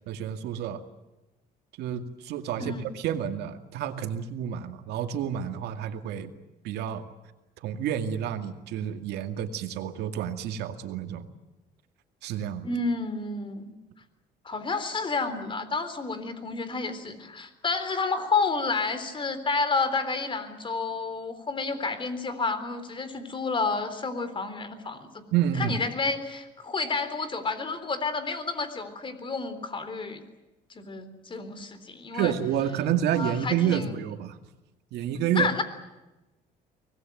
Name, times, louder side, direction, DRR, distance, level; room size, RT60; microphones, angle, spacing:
voice 1, 0.1-0.8 1.8-6.3 6.6-7.0 7.6-11.3 12.2-12.7 25.3-25.8 32.1-34.4 34.9-35.5, right 9 dB, 80° right, 7 dB, 2.3 m, -29 dB
voice 2, 12.6-13.7 14.4-25.2 25.6-30.2 30.7-32.3 33.2-34.0 35.2-35.6, left 4 dB, 30° left, 12 dB, 3.7 m, -30 dB
24.5 x 20.0 x 9.3 m, 1.0 s
cardioid pair, 110°, 17 cm